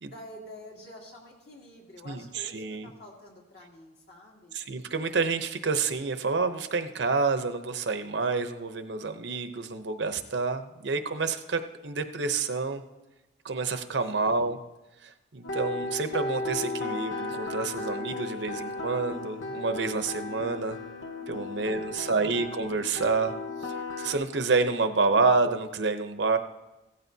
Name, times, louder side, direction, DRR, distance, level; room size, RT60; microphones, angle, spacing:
voice 1, 0.0-4.7 14.1-14.6 21.5-22.5, left 1 dB, 55° left, -2 dB, 2.7 m, -49 dB
voice 2, 2.0-2.9 4.5-12.8 13.4-14.6 15.3-20.8 21.3-23.3 24.0-26.4, right 4 dB, 70° right, 8 dB, 0.8 m, -28 dB
sound 1, 15.4-24.1, left 2 dB, 90° left, 1.0 m, -35 dB
16.0 x 13.5 x 2.8 m, 1.0 s
head